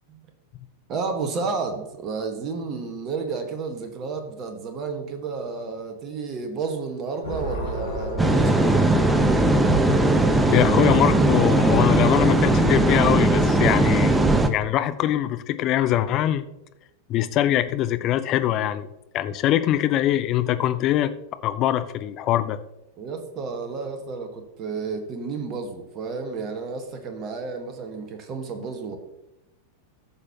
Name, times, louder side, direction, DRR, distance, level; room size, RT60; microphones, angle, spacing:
voice 1, 0.9-9.1 23.0-29.0, right 4 dB, 35° right, 5 dB, 1.5 m, -31 dB
sound 1, 7.2-13.2, right 1 dB, 70° left, 3.4 m, -31 dB
sound 2, 8.2-14.5, right 2 dB, 10° right, 0.7 m, -19 dB
voice 2, 10.5-14.2 14.5-16.4 17.1-18.9 19.1-21.1 21.4-22.6, left 12 dB, 35° left, 12 dB, 0.6 m, -23 dB
14.5 x 6.2 x 2.9 m, 0.91 s
figure-of-eight pair, 90°, 0 cm